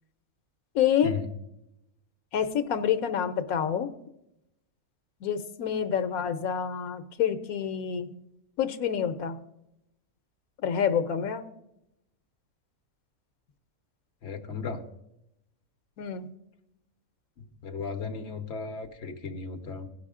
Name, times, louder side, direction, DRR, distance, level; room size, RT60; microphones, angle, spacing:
voice 1, 0.7-1.1 2.3-3.9 5.2-8.1 8.6-9.4 10.6-11.4 16.0-16.3, left 8 dB, 85° left, 9 dB, 1.3 m, -27 dB
voice 2, 14.2-14.8 17.4-19.9, left 5 dB, 55° left, 4 dB, 1.3 m, -35 dB
16.0 x 5.7 x 3.7 m, 0.84 s
omnidirectional pair, 1.5 m